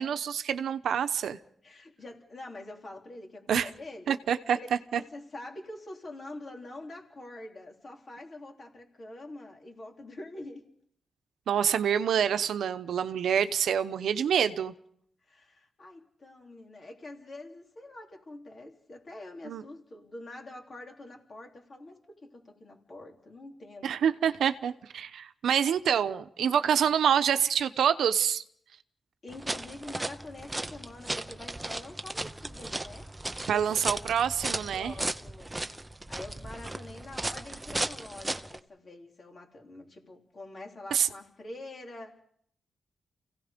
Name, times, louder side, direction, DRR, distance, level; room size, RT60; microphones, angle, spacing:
voice 1, 0.0-1.4 3.5-3.7 4.1-5.0 11.5-14.7 19.5-19.6 23.8-28.4 33.5-34.9 40.9-41.1, right 8 dB, 85° right, 11 dB, 0.9 m, -27 dB
voice 2, 1.6-4.2 4.5-4.7 4.9-10.7 15.3-24.0 29.2-33.1 33.4-33.7 34.5-35.6 36.1-42.2, left 2 dB, 35° left, 1 dB, 3.5 m, -45 dB
sound 1, 29.3-38.6, right 2 dB, 10° right, 0.8 m, -36 dB
29.5 x 17.0 x 5.2 m, 0.66 s
wide cardioid pair, 160°, 0 cm